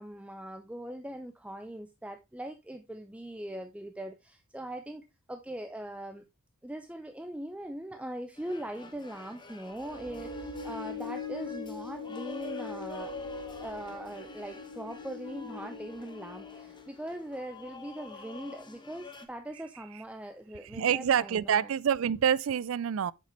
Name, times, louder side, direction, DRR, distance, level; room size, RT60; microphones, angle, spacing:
voice 1, 0.0-6.2 6.6-13.1 13.6-21.7, right 1 dB, 5° right, 0.6 m, -41 dB
sound 1, 8.4-19.3, left 3 dB, 20° left, 1.1 m, -49 dB
sound 2, 9.7-17.1, left 4 dB, 60° left, 2.1 m, -41 dB
voice 2, 20.6-23.1, right 8 dB, 70° right, 0.4 m, -27 dB
8.0 x 6.7 x 3.1 m
head